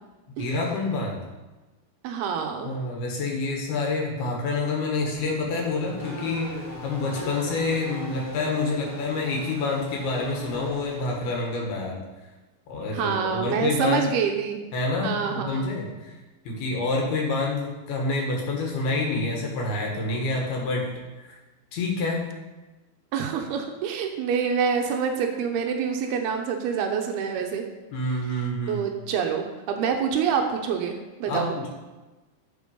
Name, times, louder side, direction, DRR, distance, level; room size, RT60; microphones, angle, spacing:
voice 1, 0.4-1.2 2.6-12.0 12.7-14.1 14.7-16.1 16.4-20.9 21.2-21.4 21.7-22.2 27.9-28.9 31.3-31.7, left 3 dB, 60° left, -1 dB, 3.2 m, -27 dB
voice 2, 2.0-2.7 12.9-14.6 15.0-15.7 23.1-27.7 28.7-31.5, right 7 dB, 90° right, 3 dB, 2.2 m, -26 dB
Race car auto racing / Accelerating revving vroom, 4.9-11.6, left 1 dB, 5° left, 1.5 m, -39 dB
11.5 x 7.2 x 5.5 m, 1.2 s
omnidirectional pair, 5.7 m